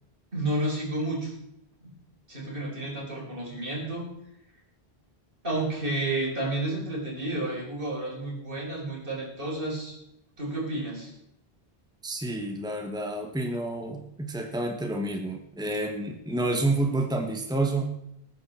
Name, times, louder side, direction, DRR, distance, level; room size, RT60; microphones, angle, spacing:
voice 1, 0.3-1.3 1.8-1.9 2.3-4.1 5.4-10.0 10.4-11.1, right 2 dB, 60° right, -2 dB, 5.3 m, -31 dB
voice 2, 12.0-17.8, right 2 dB, 5° right, 3 dB, 1.6 m, -29 dB
20.0 x 9.8 x 4.5 m, 0.80 s
omnidirectional pair, 1.0 m